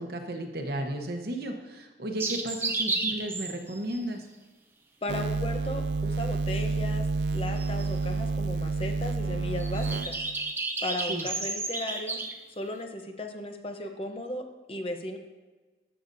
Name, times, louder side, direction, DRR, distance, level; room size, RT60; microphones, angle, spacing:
voice 1, 0.0-4.2 11.1-11.3, right 1 dB, 60° right, 4 dB, 1.0 m, -34 dB
sound 1, 2.2-4.0 7.6-7.9 9.6-12.4, right 3 dB, 15° right, 0.5 m, -32 dB
voice 2, 5.0-10.2 10.8-12.2 12.6-15.2, left 1 dB, 30° left, 4 dB, 0.7 m, -36 dB
sound 2, 5.1-10.5, right 3 dB, 80° right, 0.4 m, -29 dB
13.5 x 6.7 x 2.7 m, 1.2 s
head